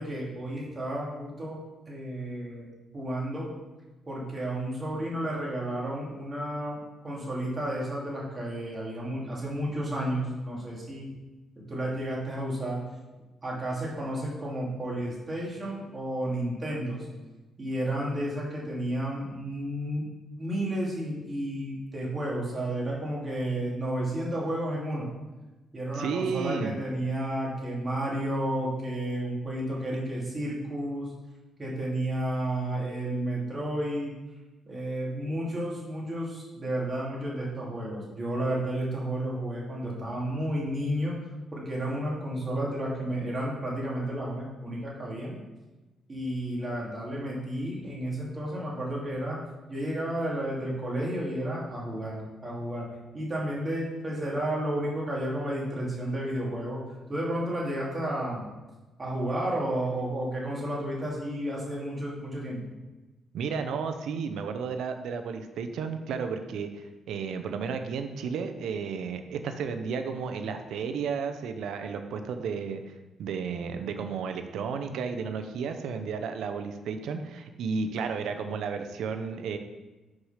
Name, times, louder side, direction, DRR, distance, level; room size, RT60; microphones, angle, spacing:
voice 1, 0.0-1.6 1.9-2.7 2.9-3.5 4.1-11.1 11.6-12.8 13.4-17.1 17.6-20.0 20.4-25.1 25.7-31.1 31.6-34.1 34.7-41.1 41.5-45.4 46.1-49.4 49.7-52.9 53.1-56.8 57.1-58.5 59.0-62.7, right 1 dB, 30° right, -4 dB, 2.7 m, -32 dB
voice 2, 25.9-26.8 63.3-72.9 73.2-79.6, right 5 dB, 75° right, 7 dB, 0.8 m, -33 dB
6.3 x 4.9 x 5.7 m, 1.1 s
cardioid pair, 90°, 0 cm